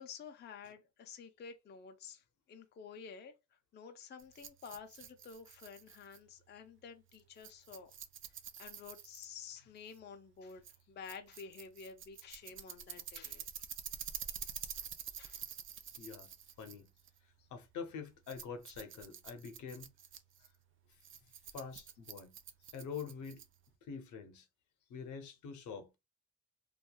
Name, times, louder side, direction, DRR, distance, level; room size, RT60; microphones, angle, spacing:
voice 1, 0.0-7.9 8.6-13.5 15.2-15.5 15.8-16.0 17.4-17.5 20.4-20.5 22.7-22.8, left 6 dB, 35° left, 0.4 m, -51 dB
Rattle, 4.2-23.8, right 8 dB, 45° right, 0.4 m, -49 dB
voice 2, 16.0-16.3 16.6-16.9 17.2-19.9 20.9-21.0 21.5-22.3 22.7-23.4 23.9-24.5 24.9-25.9, left 6 dB, 75° left, 0.7 m, -46 dB
2.8 x 2.3 x 2.2 m
cardioid pair, 90°, 30 cm